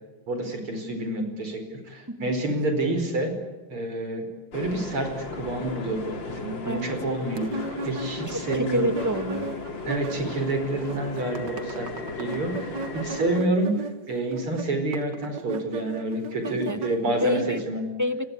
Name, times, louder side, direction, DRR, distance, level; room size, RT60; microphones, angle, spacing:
voice 1, 0.3-1.6 1.9-3.3 3.7-4.3 4.5-8.9 9.9-11.9 12.2-17.8, right 2 dB, 85° right, 6 dB, 5.8 m, -28 dB
sound 1, 4.5-13.4, left 3 dB, 60° left, 3.6 m, -36 dB
sound 2, 7.4-10.5 10.8-17.5, right 2 dB, 60° right, 2.1 m, -36 dB
voice 2, 8.3-9.6 16.4-17.6 18.0-18.2, left 1 dB, 15° right, 10 dB, 0.8 m, -28 dB
29.0 x 21.5 x 8.5 m, 1.2 s
omnidirectional pair, 2.3 m